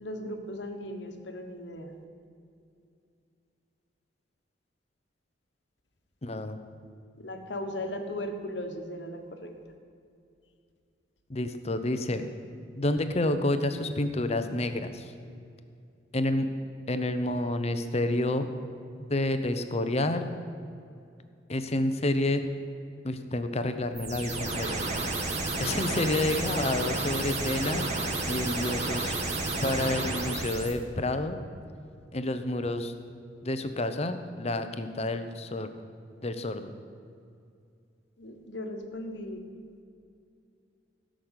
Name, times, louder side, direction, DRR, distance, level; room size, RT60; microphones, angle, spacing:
voice 1, 0.0-1.9 7.2-9.5 38.2-39.4, left 1 dB, 65° left, 5 dB, 1.4 m, -37 dB
voice 2, 6.2-6.6 11.3-12.3 12.8-15.1 16.1-16.5 16.9-18.5 19.1-20.3 21.5-22.4 23.0-24.8 25.6-27.9 28.3-29.1 29.6-31.4 32.1-32.9 33.4-35.7 36.2-36.7, left 1 dB, 35° left, 9 dB, 0.8 m, -29 dB
sound 1, 23.9-30.7, right 2 dB, 35° right, 1.6 m, -31 dB
15.5 x 6.4 x 8.2 m, 2.5 s
head